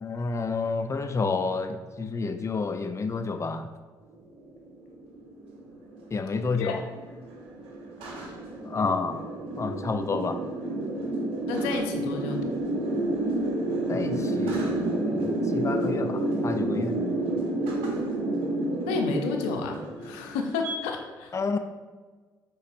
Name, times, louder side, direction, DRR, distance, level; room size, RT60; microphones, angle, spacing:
voice 1, 0.0-3.7 6.1-6.8 8.7-9.2 9.6-10.4 13.9-17.0 21.3-21.6, left 4 dB, 30° left, 8 dB, 0.4 m, -30 dB
sound 1, 4.4-20.8, right 2 dB, 80° right, 0.8 m, -30 dB
voice 2, 11.5-12.5 18.8-21.3, left 4 dB, 85° left, 3 dB, 0.5 m, -31 dB
5.3 x 3.9 x 2.5 m, 1.4 s
hypercardioid pair, 50°, 10 cm